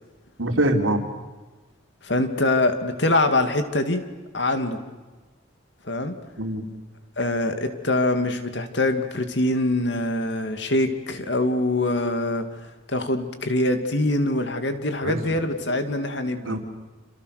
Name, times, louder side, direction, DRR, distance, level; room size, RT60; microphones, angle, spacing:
voice 1, 0.4-1.0 6.4-6.6 15.0-15.3 16.4-16.6, right 1 dB, 85° right, 3 dB, 3.6 m, -23 dB
voice 2, 2.0-4.0 4.3-4.8 5.8-6.1 7.2-12.4 12.9-16.6, left 2 dB, 60° left, 7 dB, 2.6 m, -24 dB
30.0 x 28.0 x 6.7 m, 1.2 s
head